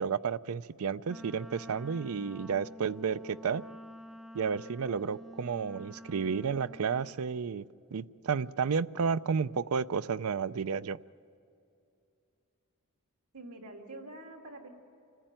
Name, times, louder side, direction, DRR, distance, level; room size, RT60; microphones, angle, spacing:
voice 1, 0.0-3.6 4.3-7.6 7.9-11.0, right 6 dB, 70° right, 16 dB, 0.5 m, -32 dB
Wind instrument woodwind instrument, 1.1-7.2, equal, ahead, 0.4 m, -48 dB
voice 2, 13.3-14.7, right 2 dB, 90° right, 2 dB, 2.8 m, -46 dB
27.0 x 14.5 x 9.0 m, 2.6 s
head